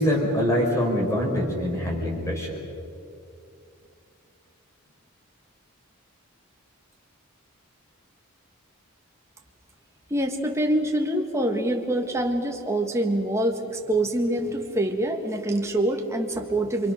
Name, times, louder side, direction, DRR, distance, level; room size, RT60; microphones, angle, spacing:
voice 1, 0.0-2.6, equal, 15° left, -1 dB, 5.1 m, -24 dB
voice 2, 10.1-16.9, right 1 dB, 15° right, 2 dB, 2.0 m, -25 dB
27.5 x 24.0 x 6.5 m, 2.5 s
head